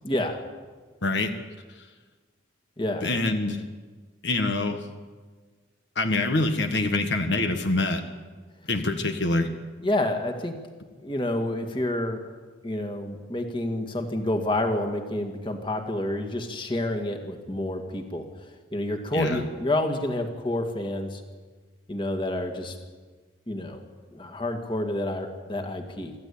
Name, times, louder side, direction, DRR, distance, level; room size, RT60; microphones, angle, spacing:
voice 1, 0.0-0.4 2.8-3.1 9.8-10.5 11.0-12.2 12.6-18.2 18.7-21.2 21.9-22.8 23.5-23.8 24.1-26.1, left 1 dB, 25° left, 5 dB, 2.1 m, -28 dB
voice 2, 1.0-1.3 3.0-3.6 4.2-4.9 6.0-8.0 8.7-9.5 19.1-19.4, left 2 dB, 65° left, 6 dB, 1.6 m, -25 dB
25.5 x 15.0 x 8.6 m, 1.4 s
head